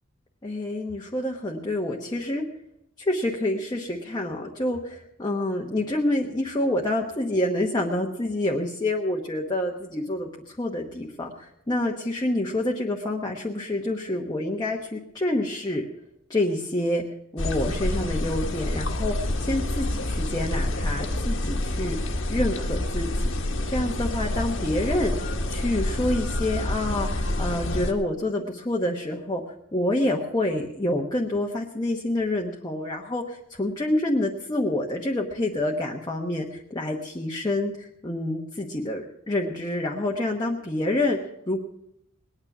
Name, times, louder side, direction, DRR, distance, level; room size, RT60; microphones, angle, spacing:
voice 1, 0.4-2.4 3.0-15.8 16.3-17.0 17.3-22.0 22.3-23.3 23.7-25.2 25.5-29.4 29.7-41.2 41.5-41.6, left 1 dB, 20° left, 0 dB, 1.1 m, -27 dB
sound 1, 17.4-27.9, left 1 dB, 65° left, 1.5 m, -28 dB
19.5 x 9.7 x 6.1 m, 0.77 s
head